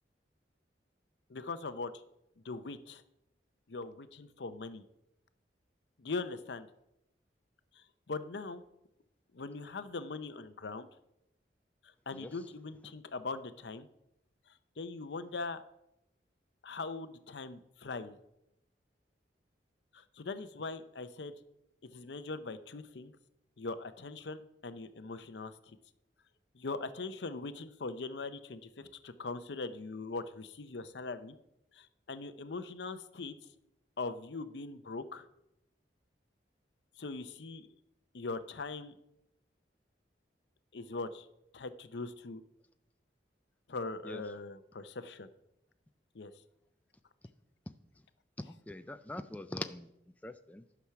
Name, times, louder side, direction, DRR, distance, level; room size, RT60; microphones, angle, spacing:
voice 1, 1.3-1.9 2.4-3.0 3.7-4.8 6.0-6.7 7.8-8.6 9.3-10.9 12.1-13.9 14.8-15.6 16.6-18.2 19.9-21.3 21.8-23.1 23.6-25.8 26.5-31.4 31.7-33.3 34.0-35.3 37.0-37.7 38.1-38.9 40.7-41.3 41.5-42.4 43.7-45.3 46.1-46.3, left 3 dB, 75° left, 11 dB, 0.7 m, -41 dB
voice 2, 48.4-49.9 50.2-50.6, left 1 dB, 10° left, 8 dB, 0.3 m, -42 dB
11.5 x 6.1 x 5.8 m, 0.85 s
head